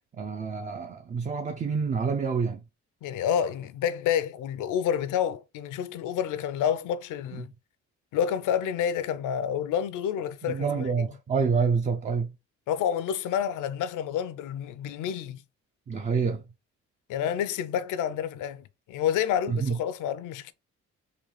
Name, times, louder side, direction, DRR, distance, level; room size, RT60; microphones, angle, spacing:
voice 1, 0.2-2.6 10.4-12.3 15.9-16.4 19.5-19.8, right 5 dB, 25° right, 0.4 m, -27 dB
voice 2, 3.0-7.5 8.1-10.9 12.7-15.4 17.1-20.5, left 9 dB, 80° left, 0.5 m, -29 dB
3.8 x 2.3 x 3.2 m
cardioid pair, 90°, 30 cm